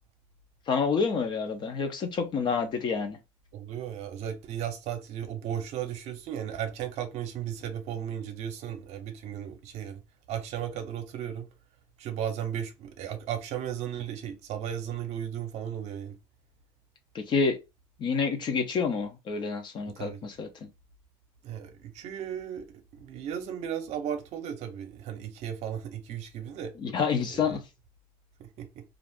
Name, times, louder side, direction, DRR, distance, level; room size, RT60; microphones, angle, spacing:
voice 1, 0.7-3.2 17.1-17.6 18.0-20.7 26.8-27.6, left 5 dB, 35° left, 0.6 m, -28 dB
voice 2, 3.5-10.0 10.3-11.5 12.0-16.2 19.8-20.3 21.4-26.7 27.3-27.6 28.4-28.8, right 9 dB, 55° right, 0.7 m, -35 dB
2.5 x 2.5 x 3.4 m
cardioid pair, 145°, 13 cm